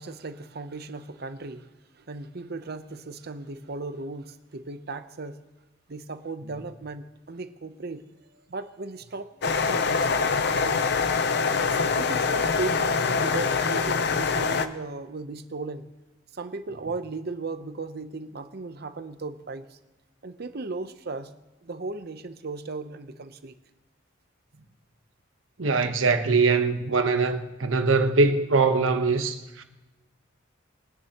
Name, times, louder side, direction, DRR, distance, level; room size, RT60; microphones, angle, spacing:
voice 1, 0.0-5.4 5.9-8.0 8.5-10.8 11.5-15.9 16.3-19.8 20.2-21.3 21.6-23.5, right 3 dB, 55° right, 0.8 m, -36 dB
sound 1, 9.4-14.7, left 5 dB, 55° left, 0.7 m, -24 dB
voice 2, 25.6-29.6, right 4 dB, 85° right, 1.1 m, -22 dB
22.0 x 9.9 x 3.0 m
head